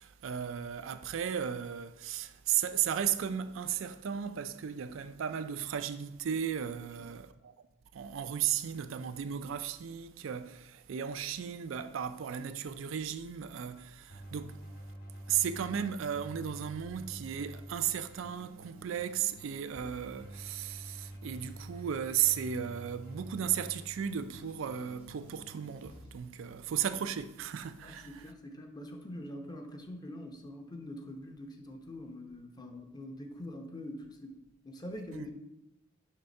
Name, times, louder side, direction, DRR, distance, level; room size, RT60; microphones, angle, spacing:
voice 1, 0.0-7.5 7.9-14.6 15.3-28.1 35.1-35.3, right 9 dB, 75° right, 0.4 m, -35 dB
Keyboard (musical), 14.1-26.2, right 1 dB, 55° left, 2.3 m, -48 dB
voice 2, 27.8-35.3, left 1 dB, 20° left, 0.7 m, -44 dB
6.6 x 3.7 x 5.3 m
head